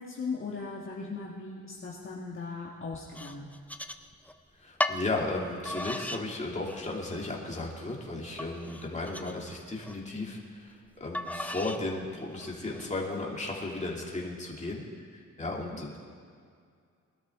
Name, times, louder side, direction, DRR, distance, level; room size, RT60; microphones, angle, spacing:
voice 1, 0.0-3.5 15.5-15.8, left 4 dB, 40° left, -4 dB, 1.5 m, -38 dB
sound 1, 3.1-4.4 4.8-5.0 5.6-6.2 6.7-7.2 7.7-7.8 8.4-10.0 11.1-11.8 12.4-12.9, left 1 dB, 5° left, 0.5 m, -36 dB
voice 2, 4.6-16.0, left 2 dB, 25° left, -2 dB, 2.4 m, -35 dB
21.5 x 12.5 x 3.6 m, 2.2 s
wide cardioid pair, 120°, 30 cm